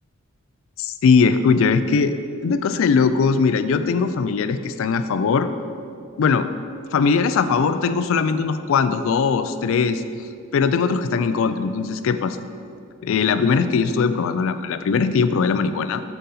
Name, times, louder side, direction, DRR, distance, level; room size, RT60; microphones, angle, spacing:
voice 1, 0.8-2.1 2.4-5.5 6.2-6.5 6.9-10.0 10.5-12.4 13.0-16.0, left 5 dB, 65° left, 11 dB, 0.3 m, -20 dB
7.5 x 4.1 x 4.1 m, 2.4 s
head